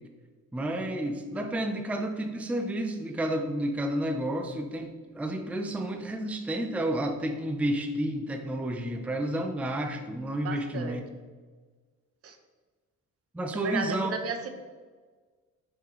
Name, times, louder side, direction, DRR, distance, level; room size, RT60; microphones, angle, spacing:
voice 1, 0.5-11.0 13.3-14.1, right 1 dB, 5° right, 5 dB, 0.5 m, -31 dB
voice 2, 10.4-11.0 12.2-12.4 13.6-14.5, right 5 dB, 50° right, 6 dB, 0.8 m, -34 dB
5.8 x 5.6 x 3.1 m, 1.4 s
cardioid pair, 90°, 30 cm